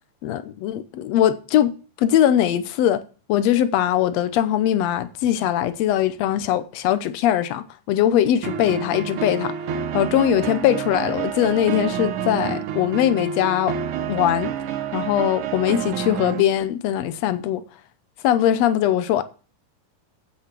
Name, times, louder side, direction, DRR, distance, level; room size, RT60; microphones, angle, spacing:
voice 1, 0.2-1.7 2.0-3.0 3.3-9.5 9.9-13.7 14.1-14.5 14.9-17.6 18.2-19.2, left 11 dB, 75° left, 1.5 m, -21 dB
sound 1, 8.4-16.4, right 8 dB, 70° right, 2.3 m, -28 dB
8.5 x 8.5 x 6.0 m
omnidirectional pair, 3.8 m